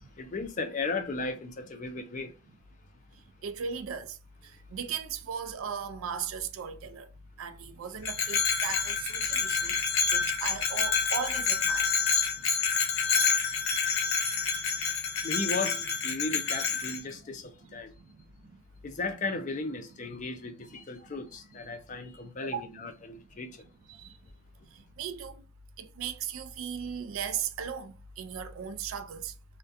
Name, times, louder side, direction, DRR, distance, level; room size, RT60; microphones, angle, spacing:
voice 1, 0.0-2.3 14.4-14.5 15.2-17.9 18.8-23.7, left 3 dB, 40° left, 0.4 m, -36 dB
voice 2, 3.4-4.2 4.4-7.1 7.4-9.8 10.1-11.9 17.1-17.2 18.0-18.6 21.7-21.8 22.4-22.6 23.9-24.2 24.7-25.4 25.8-29.3, right 7 dB, 90° right, 0.3 m, -37 dB
Bell, 8.0-17.0, left 6 dB, 85° left, 0.7 m, -28 dB
2.3 x 2.1 x 2.6 m
head